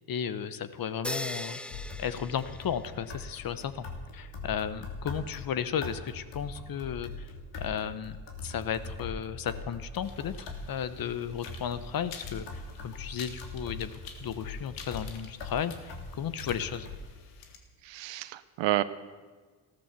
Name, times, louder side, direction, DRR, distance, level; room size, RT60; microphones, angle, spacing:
voice 1, 0.1-1.6 2.0-3.9 4.1-7.3 7.6-8.2 8.4-10.3 10.7-13.9 14.2-16.9, left 8 dB, 45° left, 13 dB, 1.1 m, -34 dB
sound 1, 1.0-3.2, left 1 dB, ahead, 0.5 m, -38 dB
sound 2, 1.7-17.0, left 3 dB, 60° left, 3.0 m, -42 dB
sound 3, 10.0-17.6, left 7 dB, 80° left, 1.9 m, -49 dB
voice 2, 17.8-18.8, right 15 dB, 60° right, 15 dB, 0.9 m, -29 dB
14.5 x 13.0 x 7.0 m, 1.4 s
hypercardioid pair, 65°, 49 cm